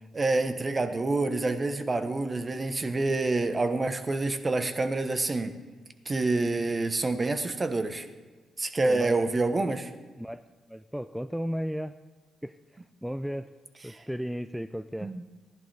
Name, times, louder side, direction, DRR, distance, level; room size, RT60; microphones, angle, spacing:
voice 1, 0.1-5.6 6.1-8.1 8.6-9.9 13.9-14.0 15.0-15.2, right 2 dB, 35° right, 9 dB, 1.0 m, -27 dB
voice 2, 8.8-9.2 10.2-10.4 10.7-11.9 12.4-12.6 13.0-13.5 13.8-15.1, equal, ahead, 11 dB, 0.4 m, -34 dB
15.5 x 11.0 x 3.4 m, 1.3 s
supercardioid pair, 50°, 0 cm